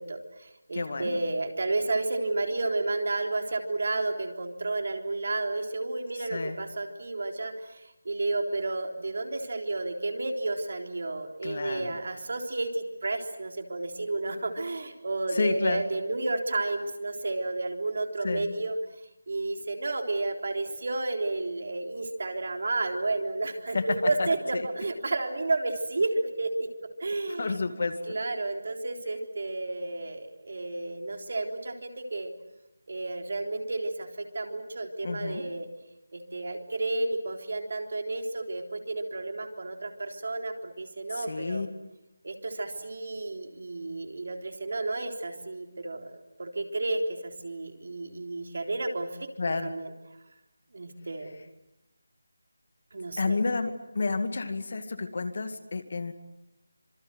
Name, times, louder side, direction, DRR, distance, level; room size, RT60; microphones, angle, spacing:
voice 1, 0.0-18.8 19.3-26.7 27.0-27.5 28.1-32.3 32.9-35.7 36.1-41.7 42.2-46.1 46.4-49.3 49.6-49.9 50.7-51.4 52.9-53.4, right 2 dB, 50° right, 4 dB, 3.7 m, -31 dB
voice 2, 0.7-1.2 6.2-6.6 11.4-12.0 15.3-15.8 18.2-18.6 23.7-24.6 27.4-28.2 35.0-35.5 41.1-41.7 49.4-49.8 53.2-56.1, left 3 dB, 40° left, 8 dB, 2.1 m, -30 dB
26.5 x 25.0 x 8.0 m, 0.93 s
figure-of-eight pair, 175°, 0 cm